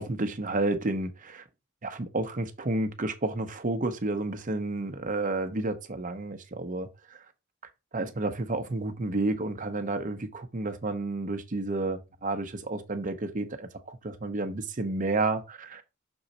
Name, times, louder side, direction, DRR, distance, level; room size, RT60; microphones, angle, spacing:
voice 1, 0.0-1.4 1.8-7.2 7.9-15.8, right 2 dB, 40° right, 0.8 m, -31 dB
6.2 x 3.9 x 4.0 m
head